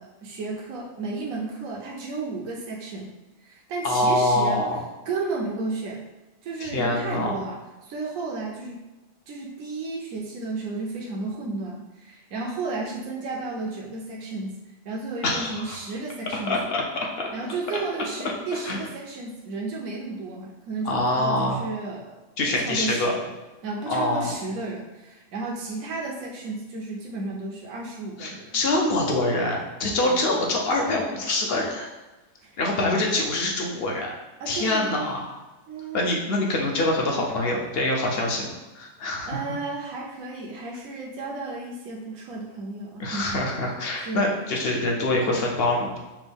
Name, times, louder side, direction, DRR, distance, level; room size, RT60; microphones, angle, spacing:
voice 1, 0.0-3.1 3.4-4.6 5.1-6.0 6.4-8.8 9.3-14.6 14.8-16.6 17.3-23.3 23.6-28.5 30.1-30.2 32.4-32.6 34.4-35.1 35.7-36.1 39.3-43.4 44.0-44.3, right 3 dB, 80° right, -3 dB, 1.1 m, -33 dB
voice 2, 3.8-4.8 6.6-7.4 15.2-15.8 16.3-17.3 18.5-18.8 20.9-21.6 22.4-23.1 23.9-24.3 28.2-31.9 32.6-34.1 34.5-35.3 35.9-39.6 43.0-46.0, left 2 dB, 55° left, -1 dB, 0.9 m, -25 dB
6.1 x 2.2 x 3.4 m, 1.1 s
omnidirectional pair, 1.4 m